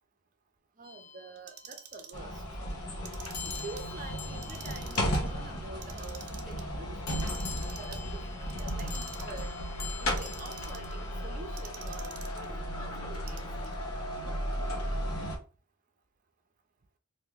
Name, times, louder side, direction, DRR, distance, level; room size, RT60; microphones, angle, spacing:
sound 1, 0.8-2.1 3.3-6.0 7.1-11.6, left 7 dB, 45° left, 0.5 m, -46 dB
voice 1, 0.8-2.4 3.5-7.3 7.8-9.5 10.0-13.4, right 3 dB, 35° right, 0.5 m, -47 dB
Clock, 1.4-2.2 2.9-3.8 4.3-5.2 5.7-6.6 7.1-8.0 8.5-9.4 9.9-10.9 11.6-12.5 13.1-13.7, right 9 dB, 80° right, 0.5 m, -47 dB
sound 2, 2.1-15.4, equal, 75° left, 1.0 m, -35 dB
3.0 x 2.6 x 3.5 m
head